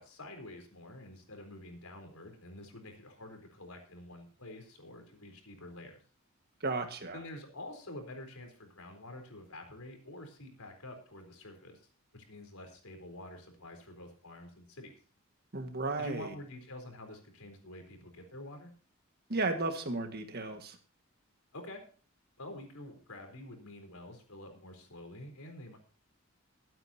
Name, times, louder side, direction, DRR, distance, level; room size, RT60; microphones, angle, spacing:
voice 1, 0.0-6.0 7.1-11.8 12.1-14.9 16.0-18.7 21.5-21.8 22.4-25.8, left 1 dB, 85° left, 4 dB, 4.1 m, -48 dB
voice 2, 6.6-7.2 15.5-16.3 19.3-20.8, right 3 dB, 45° right, 6 dB, 1.8 m, -34 dB
22.0 x 9.2 x 2.8 m, 0.40 s
head